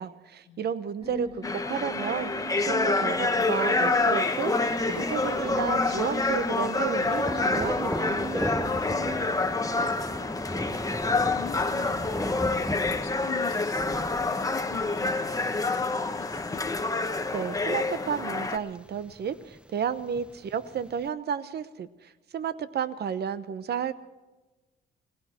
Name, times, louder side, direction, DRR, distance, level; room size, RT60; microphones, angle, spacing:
voice 1, 0.0-8.2 17.3-23.9, right 7 dB, 55° right, 14 dB, 1.0 m, -32 dB
sound 1, 1.0-10.4, right 1 dB, 25° right, 2.6 m, -40 dB
voice 2, 1.1-1.7 8.6-10.2 10.9-16.7, left 9 dB, 90° left, 6 dB, 1.7 m, -45 dB
sound 2, 1.4-18.6, left 3 dB, 15° left, 1.1 m, -27 dB
Thunder, 3.1-21.1, right 1 dB, 5° right, 0.6 m, -39 dB
20.0 x 16.5 x 4.4 m, 1.1 s
cardioid pair, 90°, 20 cm